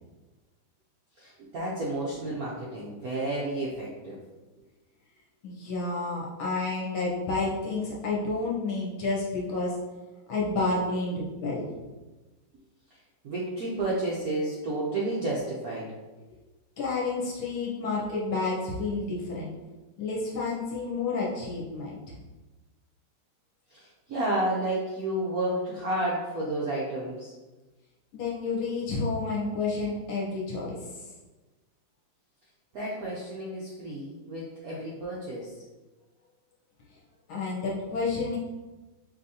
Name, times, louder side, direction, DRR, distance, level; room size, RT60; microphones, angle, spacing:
voice 1, 1.2-4.2 13.2-15.9 23.7-27.3 32.7-35.5, right 1 dB, 70° right, -5 dB, 0.9 m, -31 dB
voice 2, 5.4-9.8 10.3-11.7 16.8-19.5 20.0-22.2 28.1-30.8 37.3-38.4, left 3 dB, 70° left, -4 dB, 1.8 m, -30 dB
5.2 x 3.2 x 2.8 m, 1.2 s
omnidirectional pair, 2.4 m